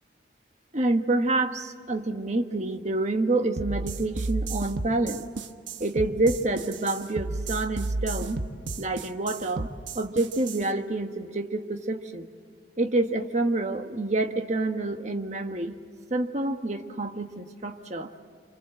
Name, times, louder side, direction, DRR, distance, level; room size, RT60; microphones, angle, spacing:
voice 1, 0.7-5.3 5.8-8.4 8.8-9.7 9.9-12.3 12.8-15.8 16.1-18.1, right 2 dB, 35° right, 6 dB, 1.3 m, -27 dB
sound 1, 3.6-10.7, right 2 dB, 75° right, 1.2 m, -32 dB
27.5 x 26.5 x 7.8 m, 2.2 s
head